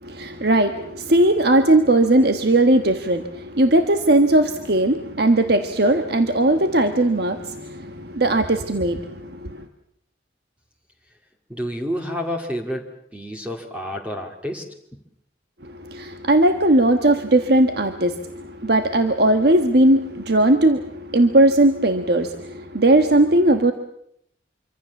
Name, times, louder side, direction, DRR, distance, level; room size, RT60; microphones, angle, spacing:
voice 1, 0.0-9.6 15.6-23.7, right 1 dB, 60° right, 7 dB, 1.4 m, -18 dB
voice 2, 11.5-14.7, equal, 5° right, 2 dB, 2.1 m, -29 dB
26.5 x 25.0 x 7.2 m, 0.71 s
head